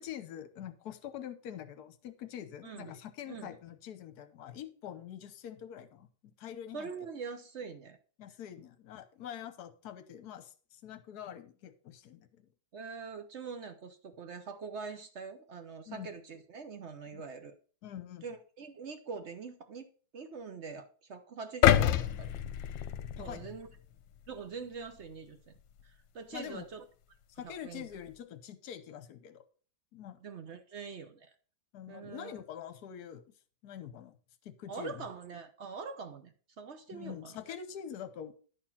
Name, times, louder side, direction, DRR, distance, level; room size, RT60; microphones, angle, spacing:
voice 1, 0.0-6.9 8.2-12.3 15.9-16.1 17.1-17.2 17.8-18.2 23.2-23.5 26.3-26.7 27.4-29.4 29.9-30.2 31.7-33.2 33.6-34.2 34.4-35.0 36.9-38.3, left 9 dB, 60° left, 10 dB, 1.3 m, -45 dB
voice 2, 2.6-3.0 3.3-3.5 6.7-8.0 12.7-17.5 18.2-19.9 20.1-22.3 23.2-23.7 24.3-25.5 25.8-26.8 27.4-27.9 30.2-31.3 31.9-32.4 34.7-37.4, right 5 dB, 60° right, 7 dB, 0.7 m, -44 dB
sound 1, 21.6-23.8 24.3-24.4, left 11 dB, 80° left, 1.3 m, -27 dB
11.0 x 4.4 x 5.7 m, 0.42 s
omnidirectional pair, 2.1 m